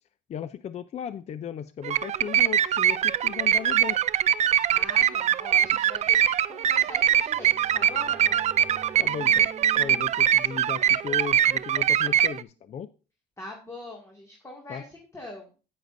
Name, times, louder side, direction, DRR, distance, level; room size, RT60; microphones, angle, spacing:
voice 1, 0.3-4.0 9.0-12.9 14.7-14.8, left 8 dB, 40° left, 14 dB, 0.5 m, -36 dB
sound 1, 1.8-12.4, right 10 dB, 40° right, 0.4 m, -23 dB
voice 2, 4.7-8.5 13.4-15.5, left 1 dB, 15° left, 0 dB, 2.2 m, -43 dB
sound 2, 6.9-12.5, right 5 dB, 20° right, 2.1 m, -49 dB
10.0 x 9.3 x 2.6 m, 0.33 s
cardioid pair, 110°, 17 cm